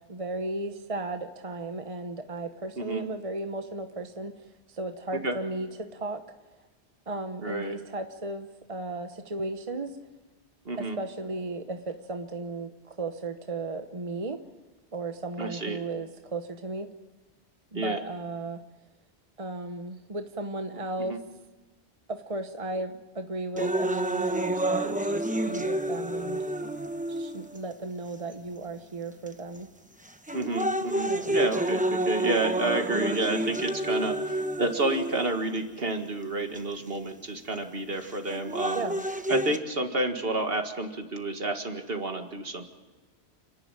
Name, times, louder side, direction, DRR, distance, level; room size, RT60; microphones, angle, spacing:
voice 1, 0.0-4.4 4.7-6.2 7.1-10.0 10.8-14.4 14.9-16.9 17.7-18.6 19.4-21.2 22.1-26.4 27.1-29.7 31.0-31.4 38.7-39.0, right 2 dB, 30° right, 7 dB, 1.1 m, -35 dB
voice 2, 7.4-7.8 10.7-11.0 15.4-15.8 17.7-18.0 21.1-21.2 30.3-38.8 39.3-42.7, right 2 dB, 60° right, 5 dB, 2.1 m, -30 dB
sound 1, 23.6-27.6 28.3-28.4 29.3-29.6 30.0-35.6 36.5-36.6 38.1-39.6, right 1 dB, 10° right, 0.9 m, -29 dB
30.0 x 11.0 x 9.1 m, 1.2 s
omnidirectional pair, 1.1 m